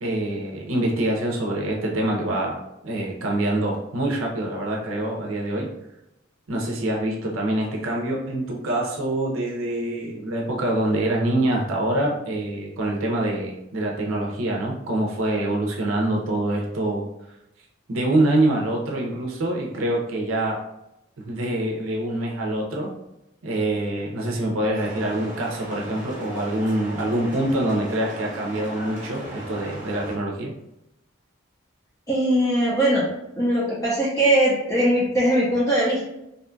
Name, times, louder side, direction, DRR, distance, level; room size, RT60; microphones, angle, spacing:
voice 1, 0.0-5.7 6.5-17.0 17.9-20.6 21.2-22.9 23.4-30.5, right 1 dB, 90° right, -1 dB, 0.5 m, -25 dB
sound 1, 24.7-30.2, right 1 dB, 40° right, 0.7 m, -37 dB
voice 2, 32.1-33.0 33.4-36.0, right 1 dB, 15° left, -7 dB, 0.5 m, -20 dB
2.7 x 2.2 x 2.5 m, 0.87 s
head